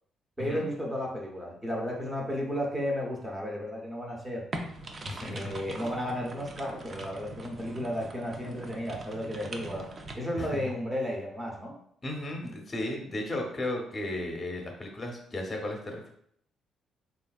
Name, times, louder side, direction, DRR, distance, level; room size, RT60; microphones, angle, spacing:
voice 1, 0.4-4.4 5.3-9.9 10.1-11.7, equal, 15° right, -1 dB, 0.7 m, -33 dB
sound 1, 4.5-10.1, right 2 dB, 40° right, 0.4 m, -42 dB
voice 2, 5.1-5.5 10.4-10.6 12.0-16.1, left 1 dB, 30° left, 1 dB, 0.7 m, -35 dB
3.3 x 2.4 x 2.3 m, 0.67 s
cardioid pair, 90°, 0 cm